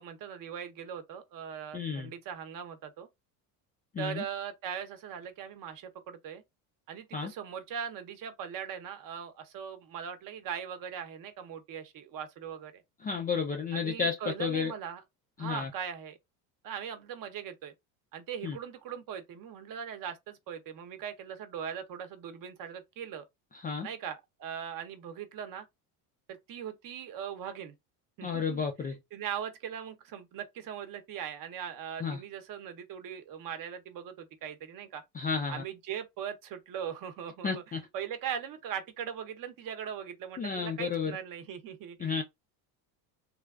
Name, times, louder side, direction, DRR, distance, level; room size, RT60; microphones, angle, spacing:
voice 1, 0.0-3.1 4.0-6.4 6.9-12.8 13.7-15.0 15.4-16.2 16.6-17.7 18.1-23.2 23.8-25.7 26.3-27.7 28.2-28.6 29.1-35.0 35.5-37.6 37.9-42.2, right 8 dB, 50° right, 0.7 m, -40 dB
voice 2, 1.7-2.1 3.9-4.2 7.1-7.3 13.0-14.7 15.4-15.7 18.4-18.6 23.5-23.9 28.2-29.0 32.0-32.2 35.1-35.6 37.4-37.8 40.4-41.2 42.0-42.2, left 5 dB, 20° left, 0.3 m, -32 dB
3.3 x 2.3 x 2.3 m
supercardioid pair, 105°, 44 cm